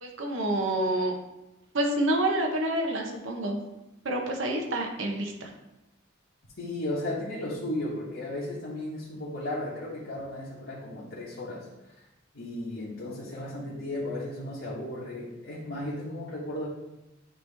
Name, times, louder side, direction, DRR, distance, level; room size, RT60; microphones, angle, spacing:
voice 1, 0.0-1.2 1.7-3.6 4.0-5.5, right 1 dB, 70° right, 2 dB, 1.0 m, -28 dB
voice 2, 6.6-12.0 12.3-16.7, left 1 dB, 70° left, -8 dB, 1.4 m, -35 dB
9.2 x 3.1 x 3.5 m, 0.95 s
head